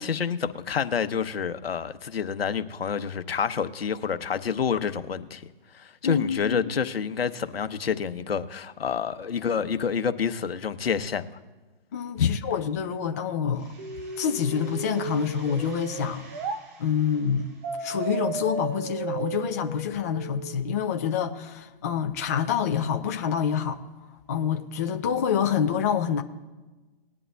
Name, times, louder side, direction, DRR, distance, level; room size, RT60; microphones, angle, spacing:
voice 1, 0.0-5.4 5.7-11.2 12.2-12.4, left 7 dB, 80° left, 0.9 m, -28 dB
voice 2, 6.0-6.7 11.9-13.7 14.2-16.3 16.8-17.5 17.8-26.2, left 7 dB, 20° left, 0.3 m, -27 dB
sound 1, 13.5-19.0, right 3 dB, 65° right, 4.4 m, -52 dB
sound 2, 13.8-16.6 17.6-20.6, right 5 dB, 30° right, 0.6 m, -34 dB
20.0 x 10.5 x 2.3 m
hypercardioid pair, 145°, 29 cm